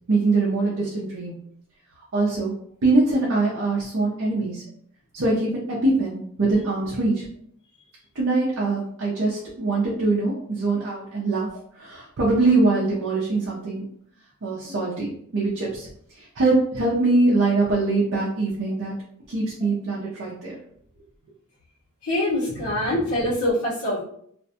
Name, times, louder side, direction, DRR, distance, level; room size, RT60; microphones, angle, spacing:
voice 1, 0.1-1.4 2.1-2.5 2.8-4.6 5.1-7.2 8.1-11.5 11.8-13.8 14.4-15.1 15.3-15.9 16.2-18.9 19.3-20.6 22.8-23.0, right 3 dB, 60° right, -5 dB, 0.5 m, -23 dB
voice 2, 22.0-24.0, left 1 dB, 80° left, -9 dB, 0.9 m, -24 dB
2.5 x 2.2 x 2.7 m, 0.66 s
head